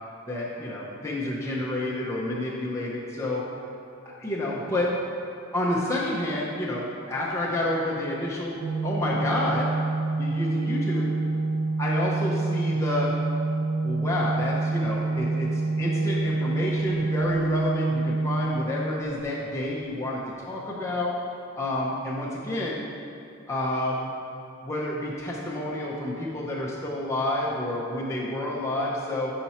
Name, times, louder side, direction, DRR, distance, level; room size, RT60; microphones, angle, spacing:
voice 1, 0.3-3.4 4.0-4.9 5.5-9.7 10.2-11.1 11.8-13.1 13.8-21.1 21.6-22.8 23.5-24.1 24.6-29.3, left 1 dB, 15° left, -6 dB, 0.6 m, -29 dB
Organ, 8.6-19.5, right 3 dB, 85° right, 0.4 m, -27 dB
5.7 x 4.4 x 4.1 m, 2.7 s
head